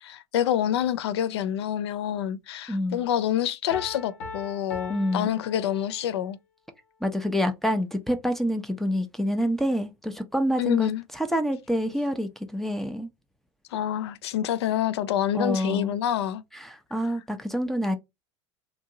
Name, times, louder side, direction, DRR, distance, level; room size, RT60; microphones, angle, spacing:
voice 1, 0.0-6.4 10.6-11.0 13.7-16.4, left 11 dB, 65° left, 0.4 m, -27 dB
voice 2, 2.7-3.0 4.9-5.4 7.0-13.1 15.3-16.0 16.5-18.0, equal, ahead, 0.5 m, -27 dB
Piano, 3.7-6.3, left 3 dB, 50° left, 0.8 m, -40 dB
2.9 x 2.6 x 2.5 m
figure-of-eight pair, 75°, 15 cm